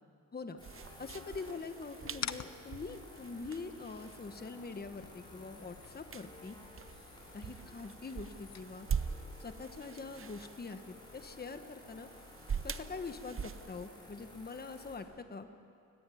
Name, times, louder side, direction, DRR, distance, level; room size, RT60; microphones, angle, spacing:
sound 1, 0.6-15.0, left 1 dB, 15° left, 6.1 m, -54 dB
sound 2, 0.6-13.9, right 6 dB, 40° right, 0.8 m, -44 dB
voice 1, 1.0-6.6 7.3-8.9 9.4-12.1 12.6-15.5, left 4 dB, 30° left, 8 dB, 1.2 m, -44 dB
sound 3, 2.1-9.1, left 8 dB, 60° left, 0.8 m, -49 dB
23.0 x 20.5 x 9.2 m, 2.5 s
wide cardioid pair, 130°, 32 cm